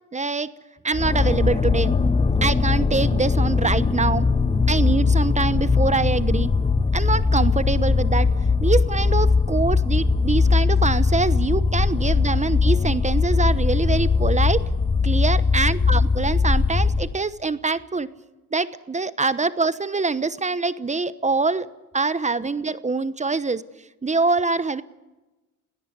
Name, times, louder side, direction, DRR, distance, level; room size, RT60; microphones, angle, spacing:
voice 1, 0.1-0.5 0.8-1.9 2.4-4.3 4.7-6.5 6.9-8.3 8.6-14.7 15.0-18.1 18.5-21.7 21.9-23.6 24.0-24.8, right 3 dB, 20° right, 15 dB, 1.0 m, -24 dB
sound 1, 0.9-17.2, left 4 dB, 20° left, 1.1 m, -20 dB
21.0 x 17.5 x 9.7 m, 1.1 s
cardioid pair, 80°, 33 cm